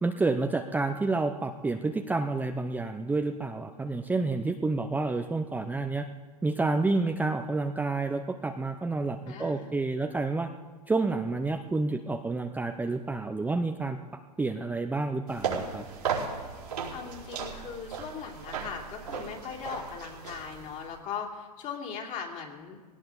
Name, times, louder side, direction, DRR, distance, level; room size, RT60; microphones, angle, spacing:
voice 1, 0.0-6.1 6.4-10.5 10.9-14.0 14.4-15.9, right 3 dB, 10° right, 4 dB, 0.7 m, -29 dB
voice 2, 9.3-9.7 16.9-22.8, left 6 dB, 40° left, 1 dB, 3.1 m, -39 dB
sound 1, 15.3-20.9, right 6 dB, 85° right, 4.7 m, -36 dB
18.0 x 17.5 x 4.0 m, 1.4 s
hypercardioid pair, 105°, 20 cm